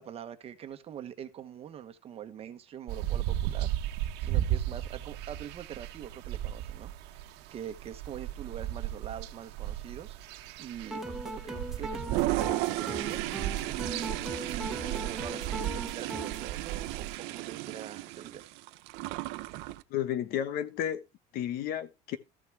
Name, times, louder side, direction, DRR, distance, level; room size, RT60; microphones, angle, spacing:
voice 1, 0.0-3.7 4.2-10.2 10.6-18.5, right 9 dB, 35° right, 1.2 m, -44 dB
sound 1, 2.9-17.2, right 12 dB, 70° right, 1.2 m, -36 dB
sound 2, 10.9-16.5, right 1 dB, ahead, 1.3 m, -40 dB
Toilet flush, 11.9-19.8, right 18 dB, 85° right, 0.9 m, -35 dB
voice 2, 19.9-21.0 21.3-22.2, left 10 dB, 60° left, 1.2 m, -32 dB
14.0 x 6.1 x 4.7 m
cardioid pair, 160°, 18 cm